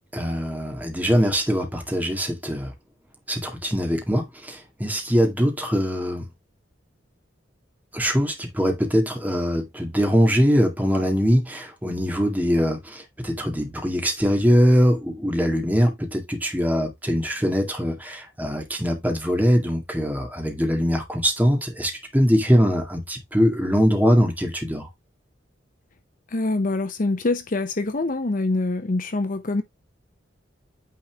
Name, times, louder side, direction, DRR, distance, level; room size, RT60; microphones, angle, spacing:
voice 1, 0.1-2.7 3.3-6.3 7.9-24.9, equal, 10° right, 2.0 m, -22 dB
voice 2, 26.3-29.6, left 2 dB, 45° left, 0.7 m, -25 dB
9.3 x 4.2 x 3.4 m
head